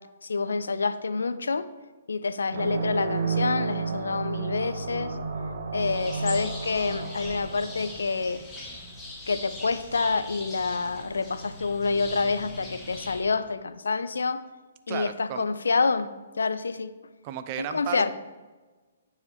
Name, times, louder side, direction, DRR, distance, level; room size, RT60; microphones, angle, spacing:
voice 1, 0.2-1.7 2.1-5.2 5.7-8.4 9.3-14.4 14.9-16.1 16.4-16.9 17.7-18.1, left 4 dB, 75° left, 13 dB, 0.4 m, -27 dB
sound 1, 2.5-8.6, right 4 dB, 60° right, 1.0 m, -32 dB
sound 2, 5.8-13.2, left 2 dB, 15° left, 1.6 m, -41 dB
voice 2, 14.9-15.4 17.2-18.1, right 11 dB, 35° right, 11 dB, 0.4 m, -34 dB
9.3 x 4.8 x 2.8 m, 1.3 s
figure-of-eight pair, 130°, 0 cm